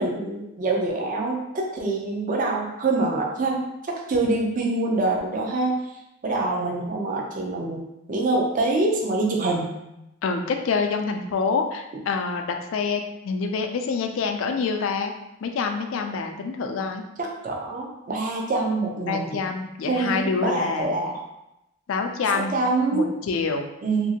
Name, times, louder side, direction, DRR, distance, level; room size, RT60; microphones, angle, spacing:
voice 1, 0.0-5.8 6.2-7.8 8.1-9.7 17.2-19.4 19.9-21.2 22.3-23.1 23.8-24.1, right 2 dB, 40° right, 0 dB, 0.5 m, -25 dB
voice 2, 10.2-15.1 15.4-17.0 19.1-20.9 21.9-22.6 22.9-23.7, left 4 dB, 80° left, 5 dB, 0.4 m, -26 dB
2.9 x 2.6 x 2.7 m, 0.88 s
head